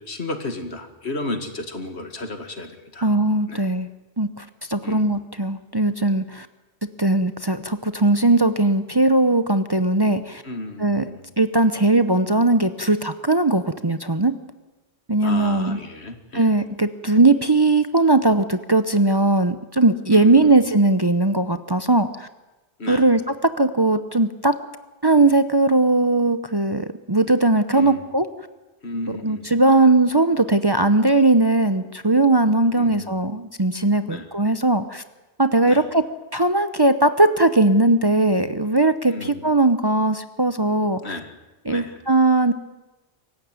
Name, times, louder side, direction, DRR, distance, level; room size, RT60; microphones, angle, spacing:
voice 1, 0.1-3.1 3.5-3.6 4.8-5.1 10.4-11.3 15.2-16.5 20.1-20.6 22.8-23.1 27.7-28.0 28.8-29.8 32.7-33.2 34.1-34.3 35.6-35.9 39.1-39.6 41.0-41.3 41.7-42.0, left 2 dB, 75° left, 7 dB, 2.4 m, -33 dB
voice 2, 3.0-3.9 4.2-6.5 7.0-10.4 10.8-11.1 11.4-14.3 15.1-15.8 16.3-22.3 22.9-24.5 25.0-28.3 29.1-35.0 35.4-36.0 36.3-41.1 41.7-42.5, right 2 dB, 25° right, 10 dB, 0.8 m, -19 dB
24.5 x 15.0 x 9.6 m, 1.1 s
omnidirectional pair, 1.1 m